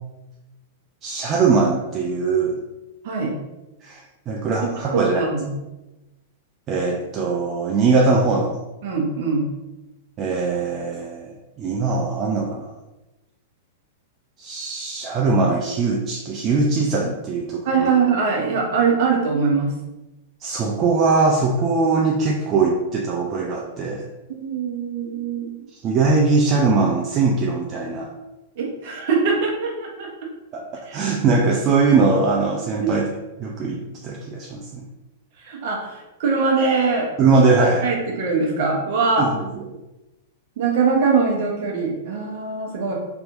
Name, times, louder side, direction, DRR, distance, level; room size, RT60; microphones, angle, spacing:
voice 1, 1.0-2.6 3.8-4.0 4.3-5.2 6.7-8.6 10.2-12.7 14.4-17.9 20.4-24.0 25.8-28.1 30.5-33.1 33.4-34.8 37.2-37.8 39.2-39.4, right 4 dB, 35° right, -1 dB, 0.4 m, -21 dB
voice 2, 4.9-5.5 8.8-9.4 17.6-19.7 24.3-25.6 28.6-30.1 30.8-31.0 35.4-37.4 37.8-39.3 40.6-42.9, right 5 dB, 55° right, -1 dB, 1.0 m, -22 dB
3.3 x 2.8 x 2.6 m, 1.0 s
hypercardioid pair, 100°, 0 cm